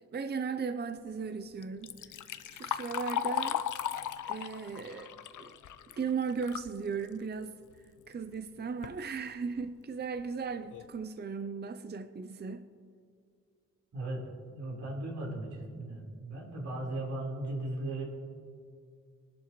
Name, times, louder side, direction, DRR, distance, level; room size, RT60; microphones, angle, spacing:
voice 1, 0.1-2.0 2.5-3.6 4.3-5.1 5.4-5.6 6.0-7.6 8.1-12.7, right 5 dB, 35° right, 0.6 m, -36 dB
Liquid, 1.6-6.7 7.1-7.2 8.1-8.2 8.6-9.0 9.6-9.7 10.2-10.3 10.7-11.0, left 10 dB, 85° left, 0.6 m, -36 dB
voice 2, 13.9-18.0, right 2 dB, 85° right, 4.3 m, -37 dB
24.0 x 11.5 x 3.1 m
cardioid pair, 90°, 30 cm